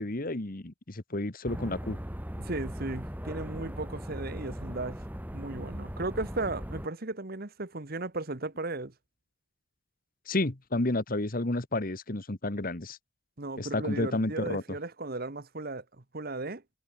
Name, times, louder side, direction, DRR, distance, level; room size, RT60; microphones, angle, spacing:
voice 1, 0.0-2.0 10.3-13.0 13.6-14.6, left 2 dB, 45° left, 1.4 m, -31 dB
sound 1, 1.5-6.9, equal, 10° right, 2.6 m, -39 dB
voice 2, 2.4-5.0 5.3-8.9 13.4-15.8 16.1-16.6, right 2 dB, 50° right, 1.4 m, -35 dB
head